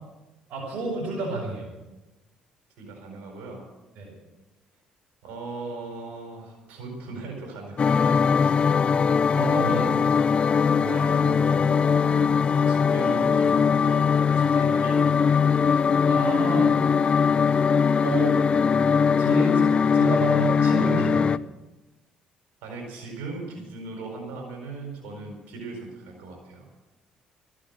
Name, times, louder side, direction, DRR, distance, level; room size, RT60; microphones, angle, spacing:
voice 1, 0.5-1.7 3.9-4.1 9.3-9.9 16.1-16.7 18.0-18.4 19.2-19.6 19.9-21.3, right 2 dB, 70° right, -7 dB, 6.6 m, -29 dB
voice 2, 2.8-3.6 5.2-8.7 10.8-15.6 22.6-26.7, right 3 dB, 85° right, 1 dB, 4.5 m, -38 dB
sound 1, 7.8-21.4, left 6 dB, 40° left, 0.5 m, -21 dB
14.5 x 10.0 x 7.7 m, 1.1 s
supercardioid pair, 80°, 3 cm